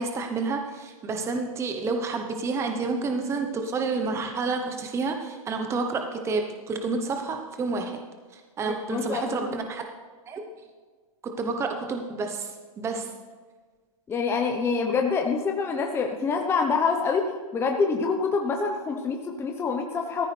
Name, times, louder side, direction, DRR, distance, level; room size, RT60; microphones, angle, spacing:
voice 1, 0.0-8.0 8.3-9.8 10.3-10.4 11.2-13.1, right 4 dB, 15° right, 4 dB, 0.9 m, -29 dB
voice 2, 8.7-9.6 14.1-20.3, left 5 dB, 15° left, 3 dB, 0.9 m, -26 dB
16.0 x 14.0 x 3.4 m, 1.5 s
hypercardioid pair, 130°, 18 cm